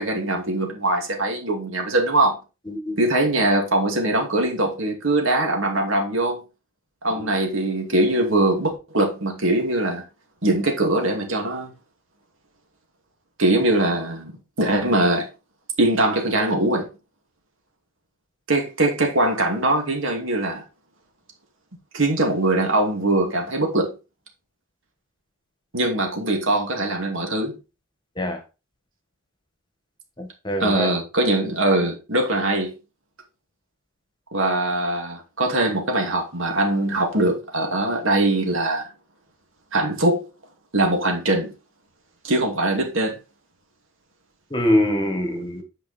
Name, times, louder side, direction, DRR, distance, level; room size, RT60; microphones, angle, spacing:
voice 1, 0.0-2.4 3.0-6.4 7.0-10.0 10.4-11.7 13.4-14.3 14.6-15.3 15.8-16.9 18.5-20.6 21.9-23.9 25.7-27.6 30.6-32.7 34.3-38.9 39.7-40.2 40.7-41.5 42.2-43.2, right 2 dB, 65° right, 2.4 m, -22 dB
voice 2, 2.7-3.0 7.2-7.3 28.2-28.4 30.2-30.9 44.5-45.6, left 1 dB, 20° left, 1.4 m, -24 dB
9.7 x 5.1 x 4.3 m
head